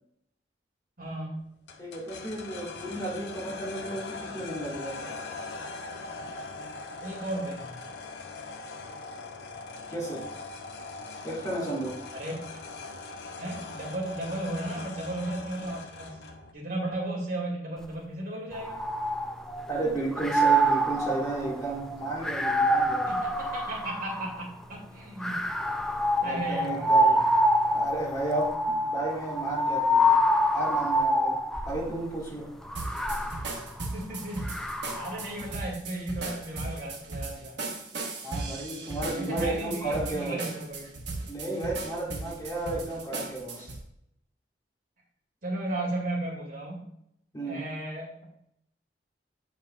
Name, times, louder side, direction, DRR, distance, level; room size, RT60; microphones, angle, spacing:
voice 1, 1.0-1.4 7.0-7.8 12.1-12.3 13.4-16.2 16.5-18.8 23.1-25.4 26.2-27.2 33.9-34.6 35.0-37.6 39.1-40.9 45.4-46.8 47.4-48.1, right 1 dB, 55° right, -3 dB, 2.4 m, -35 dB
sound 1, 1.7-16.5, left 3 dB, 65° left, 0.6 m, -41 dB
voice 2, 1.8-5.1 9.9-10.3 11.2-12.0 19.7-23.1 25.3-25.4 26.2-27.2 27.7-30.2 30.5-31.4 31.7-32.5 38.2-40.4 41.3-43.7 47.3-47.7, right 2 dB, 20° left, -4 dB, 1.7 m, -33 dB
sound 2, 18.5-19.7 20.1-24.5 25.2-31.9 32.6-35.2, equal, 5° left, 0.3 m, -26 dB
sound 3, 32.7-43.8, right 3 dB, 75° right, 1.1 m, -37 dB
7.3 x 5.7 x 2.4 m, 0.74 s
head